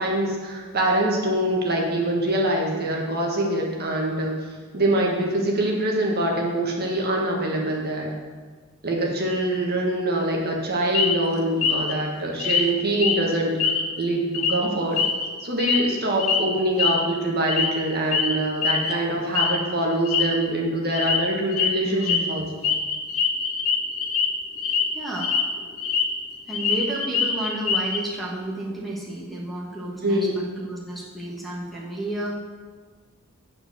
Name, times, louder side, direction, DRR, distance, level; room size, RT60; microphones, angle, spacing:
voice 1, 0.0-4.4 4.7-8.1 8.8-15.0 15.4-22.7 30.0-30.3, right 1 dB, 45° right, -1 dB, 1.4 m, -24 dB
sound 1, 10.9-11.2 11.6-11.9 12.4-12.7 13.0-13.2 13.6-14.1 14.3-14.5 15.0-15.9 16.2-16.4 16.8-17.0 17.5-17.8 18.1-18.3 18.6-18.9 19.4-19.6 19.9-20.2 20.9-21.2 21.5-21.7 22.0-22.2 22.6-24.3 24.6-24.8 25.2-26.1 26.3-28.0, left 6 dB, 65° left, 1.0 m, -23 dB
voice 2, 21.8-22.6 24.9-25.3 26.5-32.4, right 1 dB, ahead, -4 dB, 1.2 m, -32 dB
8.8 x 4.6 x 6.7 m, 1.5 s
head